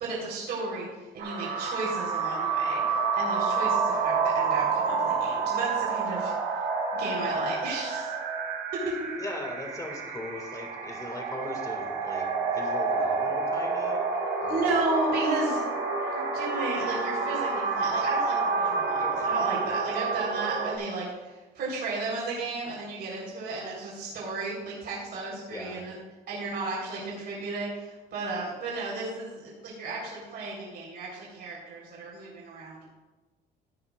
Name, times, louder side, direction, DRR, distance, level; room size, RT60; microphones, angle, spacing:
voice 1, 0.0-6.6 6.9-8.1 8.7-8.9 14.5-15.6 16.0-26.0 26.3-32.8, right 3 dB, 65° right, -4 dB, 3.8 m, -33 dB
sound 1, 1.2-20.8, right 4 dB, 80° right, 2.8 m, -29 dB
voice 2, 9.2-14.0 14.4-14.8 19.0-19.3 25.5-25.9, left 2 dB, 20° left, 2 dB, 1.9 m, -39 dB
16.0 x 10.0 x 2.4 m, 1.2 s
cardioid pair, 145°, 18 cm